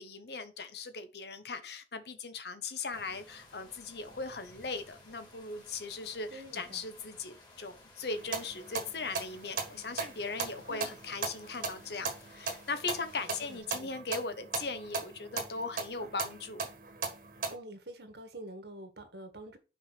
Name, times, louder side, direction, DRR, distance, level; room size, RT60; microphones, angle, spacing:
voice 1, 0.0-16.7, left 4 dB, 65° left, 1.1 m, -39 dB
sound 1, 2.9-13.6, left 2 dB, 25° left, 2.2 m, -57 dB
voice 2, 6.3-6.9 10.7-11.0 13.4-13.9 16.0-16.2 17.5-19.6, right 1 dB, 70° right, 1.7 m, -47 dB
sound 2, 8.1-17.5, right 4 dB, 50° right, 1.5 m, -39 dB
5.9 x 5.1 x 6.0 m
head